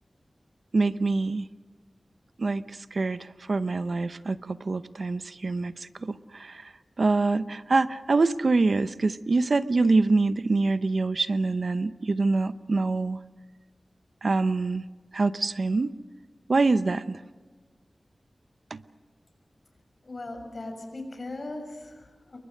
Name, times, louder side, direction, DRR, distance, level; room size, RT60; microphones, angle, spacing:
voice 1, 0.7-1.5 2.4-6.7 7.0-13.2 14.2-14.8 15.1-15.9 16.5-17.2 18.7-18.8, right 3 dB, 60° right, 13 dB, 0.8 m, -25 dB
voice 2, 20.0-22.4, left 2 dB, 50° left, 4 dB, 6.4 m, -38 dB
28.5 x 23.0 x 6.5 m, 1.4 s
wide cardioid pair, 90°, 0 cm